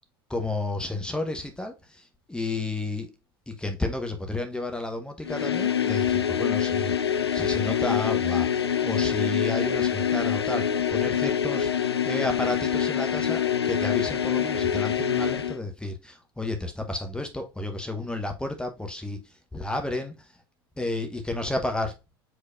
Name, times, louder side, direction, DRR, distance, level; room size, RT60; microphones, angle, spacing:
voice 1, 0.3-3.1 3.5-20.3 20.8-21.9, left 2 dB, 5° left, 0.9 m, -32 dB
sound 1, 5.2-15.6, left 8 dB, 85° left, 0.4 m, -25 dB
5.2 x 4.0 x 2.4 m
figure-of-eight pair, 80°, 13 cm